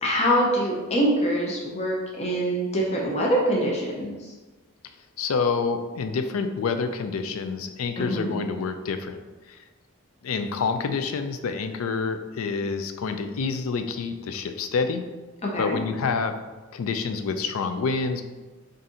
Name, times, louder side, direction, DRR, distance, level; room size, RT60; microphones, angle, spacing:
voice 1, 0.0-4.3 8.0-8.3 15.4-15.8, equal, 30° left, -2 dB, 0.6 m, -24 dB
voice 2, 5.2-9.2 9.5-9.6 10.2-15.1 15.6-16.4 16.7-18.2, left 4 dB, 80° left, 8 dB, 0.4 m, -27 dB
4.1 x 2.6 x 3.7 m, 1.2 s
head